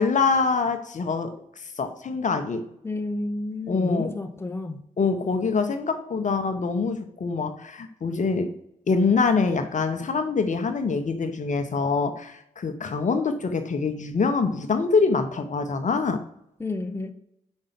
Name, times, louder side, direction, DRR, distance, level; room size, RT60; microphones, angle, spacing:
voice 1, 0.0-2.6 3.7-4.1 5.0-8.5 8.9-16.2, left 4 dB, 45° left, 7 dB, 0.8 m, -25 dB
voice 2, 2.8-4.8 16.6-17.1, left 2 dB, 15° left, 6 dB, 0.8 m, -30 dB
5.3 x 5.0 x 5.9 m, 0.79 s
hypercardioid pair, 40°, 17 cm